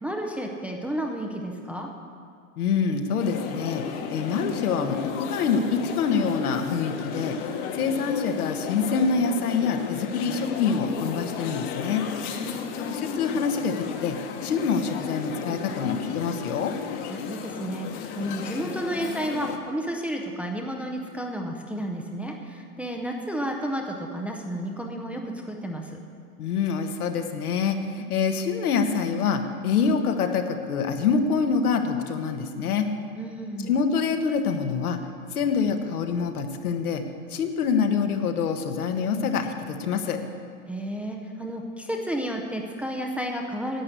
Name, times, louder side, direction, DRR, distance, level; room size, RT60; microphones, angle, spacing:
voice 1, 0.0-1.9 12.4-13.0 17.1-26.0 33.2-33.7 40.7-43.8, right 1 dB, 5° right, 1 dB, 0.5 m, -32 dB
voice 2, 2.6-3.8 4.1-7.4 7.7-12.0 12.7-16.8 26.4-32.9 33.6-35.0 35.3-37.0 37.3-40.2, left 5 dB, 80° left, 6 dB, 1.4 m, -26 dB
sound 1, 3.2-19.6, left 7 dB, 45° left, 1.2 m, -34 dB
11.0 x 7.6 x 8.3 m, 2.3 s
hypercardioid pair, 130°, 44 cm